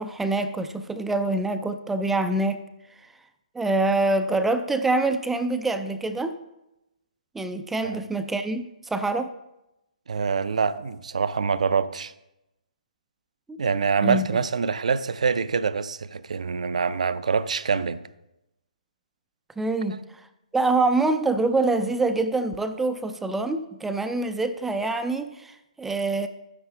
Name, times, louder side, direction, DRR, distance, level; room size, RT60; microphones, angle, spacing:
voice 1, 0.0-2.6 3.5-6.4 7.3-9.3 13.5-13.6 14.0-14.3 19.6-20.0 20.5-26.3, right 2 dB, 5° right, 0.4 m, -25 dB
voice 2, 10.1-12.1 13.6-18.0 19.9-20.0, right 5 dB, 60° right, 0.5 m, -25 dB
12.5 x 9.8 x 3.4 m
figure-of-eight pair, 135°, 4 cm